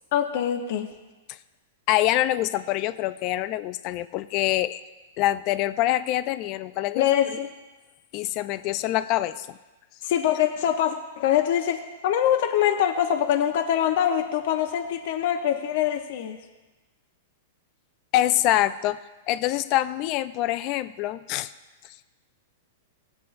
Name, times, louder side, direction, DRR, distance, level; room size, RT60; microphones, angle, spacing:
voice 1, 0.1-0.9 7.0-7.5 10.0-16.4, left 10 dB, 60° left, 4 dB, 0.8 m, -24 dB
voice 2, 1.9-4.8 5.2-7.1 8.1-9.6 18.1-19.0 19.3-21.5, left 14 dB, 40° left, 13 dB, 0.5 m, -25 dB
18.0 x 8.1 x 2.6 m, 1.2 s
hypercardioid pair, 140°, 0 cm